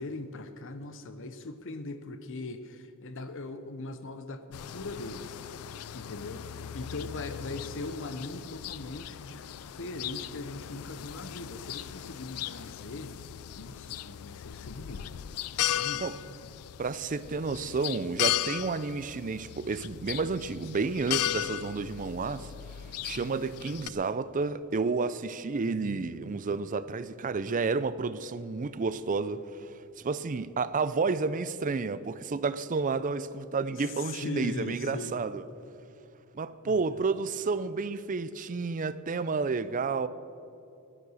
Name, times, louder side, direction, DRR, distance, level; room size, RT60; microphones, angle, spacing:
voice 1, 0.0-5.4 5.9-13.1 13.6-15.1 15.5-16.2 21.2-21.4 25.6-26.4 33.7-35.2 36.7-36.8, left 2 dB, 60° left, 0.9 m, -40 dB
sound 1, 4.5-23.9, left 12 dB, 75° left, 0.4 m, -37 dB
voice 2, 16.8-22.5 23.0-35.4 36.3-40.1, right 4 dB, 35° right, 0.5 m, -31 dB
15.0 x 11.0 x 6.3 m
head